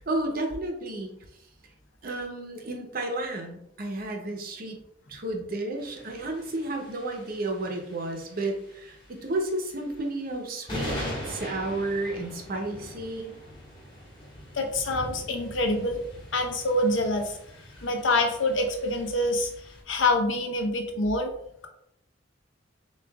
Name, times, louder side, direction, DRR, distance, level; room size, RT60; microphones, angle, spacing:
voice 1, 0.1-1.1 2.0-4.8 5.1-13.3, right 2 dB, 50° right, 3 dB, 0.8 m, -32 dB
sound 1, 5.8-19.8, equal, 25° left, 1.5 m, -42 dB
voice 2, 14.5-16.0 16.3-17.4 17.8-19.5 19.9-21.3, left 2 dB, 85° left, 4 dB, 0.7 m, -26 dB
7.0 x 2.4 x 2.3 m, 0.76 s
head